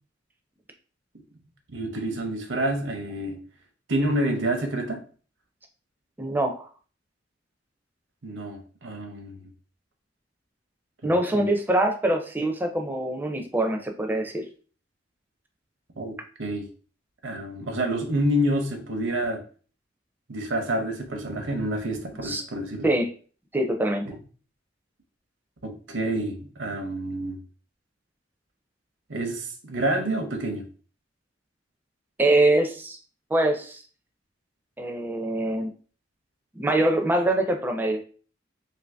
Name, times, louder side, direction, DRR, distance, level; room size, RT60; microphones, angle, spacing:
voice 1, 1.7-3.4 3.9-5.0 8.2-9.5 11.0-11.5 16.0-16.7 17.2-19.4 20.3-22.9 24.1-24.2 25.6-27.4 29.1-30.6, right 1 dB, 80° right, 0.7 m, -28 dB
voice 2, 6.2-6.7 11.0-14.4 22.2-22.4 22.8-23.1 23.5-24.0 32.2-33.0 33.3-33.8 34.8-35.7 36.5-38.0, right 1 dB, 10° right, 0.4 m, -24 dB
2.8 x 2.6 x 3.3 m
head